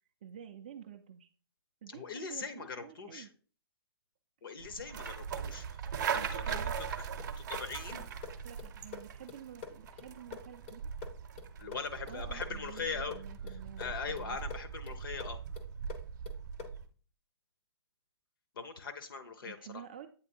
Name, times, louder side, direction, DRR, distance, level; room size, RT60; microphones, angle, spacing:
voice 1, 0.2-1.3 1.8-3.3 6.1-6.8 8.4-10.9 12.1-14.4 19.4-20.1, right 9 dB, 20° right, 5 dB, 0.3 m, -50 dB
voice 2, 1.9-3.3 4.4-5.8 6.1-7.1 7.4-8.0 11.6-13.2 13.5-15.4 18.5-19.8, left 5 dB, 55° left, 9 dB, 0.9 m, -41 dB
sound 1, 4.6-16.9, right 7 dB, 45° right, 0.7 m, -40 dB
sound 2, 7.2-16.9, left 6 dB, 25° left, 0.6 m, -49 dB
8.1 x 3.1 x 4.3 m, 0.39 s
hypercardioid pair, 175°, 14 cm